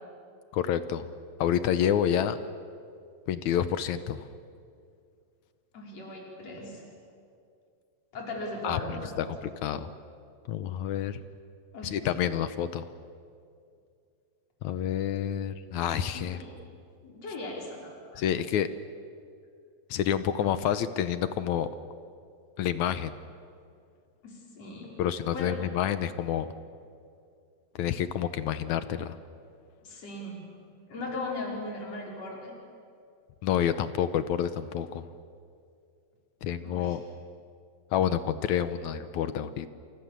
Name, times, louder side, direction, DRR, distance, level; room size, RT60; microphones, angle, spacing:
voice 1, 0.5-1.1 1.4-2.4 3.3-4.3 8.6-8.8 9.2-9.9 10.5-11.2 11.8-12.9 14.6-16.4 18.2-18.7 19.9-21.7 22.6-23.1 25.0-26.5 27.8-29.2 33.4-35.0 36.4-37.0 37.9-39.7, left 9 dB, 70° left, 12 dB, 1.9 m, -28 dB
voice 2, 5.7-6.8 8.1-9.3 11.7-12.2 16.1-16.5 17.0-18.2 24.2-24.9 25.3-25.6 29.8-30.4 30.9-32.5 36.6-37.0, left 2 dB, 45° left, -1 dB, 6.1 m, -38 dB
29.5 x 27.5 x 7.5 m, 2.3 s
omnidirectional pair, 4.1 m